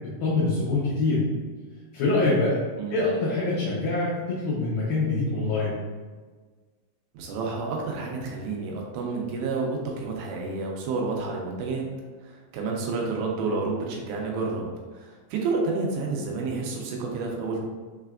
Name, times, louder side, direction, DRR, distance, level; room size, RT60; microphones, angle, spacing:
voice 1, 0.2-1.3 1.9-2.6 2.9-5.8, left 3 dB, 75° left, -8 dB, 2.3 m, -24 dB
voice 2, 7.1-11.8 12.2-17.6, right 3 dB, 85° right, 0 dB, 2.9 m, -30 dB
6.5 x 3.3 x 2.4 m, 1.4 s
omnidirectional pair, 5.0 m